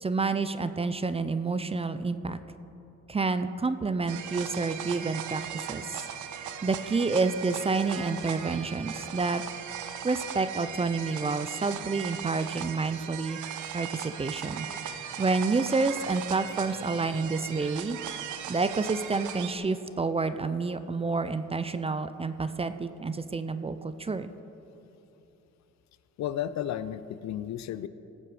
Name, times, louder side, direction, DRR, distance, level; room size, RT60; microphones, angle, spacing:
voice 1, 0.0-2.4 3.1-6.0 6.6-9.4 10.0-13.4 13.7-18.0 18.5-24.3, right 4 dB, 20° right, 12 dB, 0.5 m, -29 dB
sound 1, 4.1-19.5, right 8 dB, 75° right, 0.8 m, -38 dB
voice 2, 26.2-27.9, left 11 dB, 65° left, 14 dB, 0.5 m, -33 dB
17.5 x 7.6 x 4.9 m, 3.0 s
cardioid pair, 90°, 30 cm